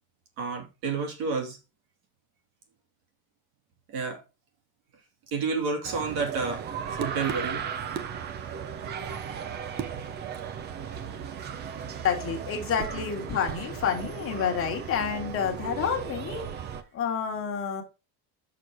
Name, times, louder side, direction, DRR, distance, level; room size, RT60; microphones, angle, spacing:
voice 1, 0.4-1.6 3.9-4.2 5.3-6.6 7.0-7.6, right 4 dB, 55° right, 2.9 m, -30 dB
sound 1, 5.8-16.8, right 7 dB, 25° right, 0.5 m, -36 dB
voice 2, 12.0-16.5 16.9-17.8, left 7 dB, 25° left, 1.9 m, -29 dB
6.7 x 6.4 x 4.7 m
cardioid pair, 175°, 47 cm